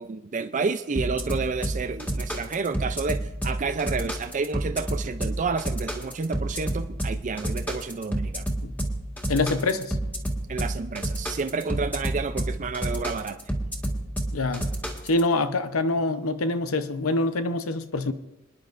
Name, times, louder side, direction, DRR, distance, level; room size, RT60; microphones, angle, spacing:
voice 1, 0.0-8.5 10.5-13.4, right 4 dB, 35° right, 0.4 m, -30 dB
sound 1, 1.0-15.2, right 1 dB, 10° left, 2.0 m, -29 dB
voice 2, 9.3-9.9 14.3-14.7 15.1-18.1, left 2 dB, 85° left, 0.7 m, -25 dB
27.0 x 10.5 x 2.5 m
head